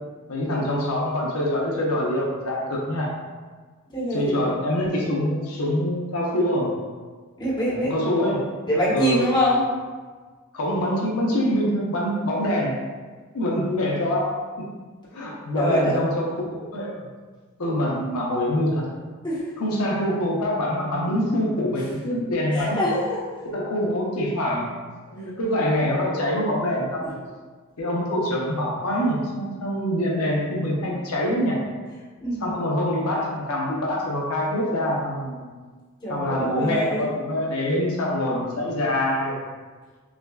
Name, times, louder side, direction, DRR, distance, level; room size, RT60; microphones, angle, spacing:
voice 1, 0.3-3.1 4.1-6.7 7.8-8.4 8.9-9.3 10.5-12.8 13.3-14.4 15.1-17.1 17.6-18.9 19.6-22.8 23.4-24.7 25.1-27.2 27.8-31.6 32.4-35.4 36.1-39.4, left 1 dB, 80° left, -3 dB, 0.7 m, -25 dB
voice 2, 3.9-4.4 7.4-7.9 8.7-9.7 15.5-16.0 19.2-19.5 22.5-23.2 32.2-32.5 36.0-37.1, equal, 20° left, -8 dB, 1.1 m, -24 dB
5.7 x 2.3 x 2.3 m, 1.4 s
head